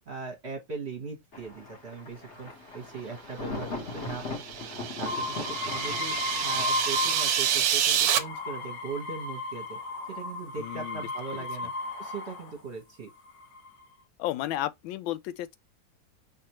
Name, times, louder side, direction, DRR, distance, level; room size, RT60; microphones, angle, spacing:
voice 1, 0.1-4.4 4.7-9.8 10.1-11.7 12.0-13.1, right 4 dB, 45° right, 1.0 m, -39 dB
Thunder, 1.3-7.7, left 3 dB, 40° left, 1.2 m, -40 dB
sound 1, 4.0-8.2, right 10 dB, 65° right, 0.9 m, -28 dB
sound 2, 5.1-7.6 7.9-12.5 13.3-13.8, left 3 dB, 65° left, 1.7 m, -34 dB
voice 2, 10.6-11.0 11.3-11.4 14.2-15.6, left 14 dB, 85° left, 1.3 m, -33 dB
5.4 x 3.3 x 2.9 m
omnidirectional pair, 2.1 m